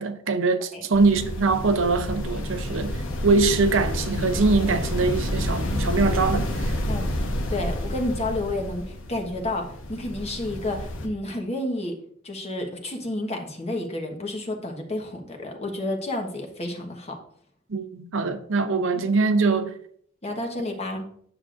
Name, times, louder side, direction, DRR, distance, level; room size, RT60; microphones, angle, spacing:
voice 1, 0.0-6.8 17.7-19.7, right 3 dB, 65° right, 0.7 m, -23 dB
sound 1, 0.9-11.1, left 1 dB, 75° left, 1.0 m, -29 dB
voice 2, 7.5-11.9 12.2-17.2 20.2-21.0, left 1 dB, 30° left, 1.2 m, -30 dB
9.5 x 6.8 x 2.5 m
head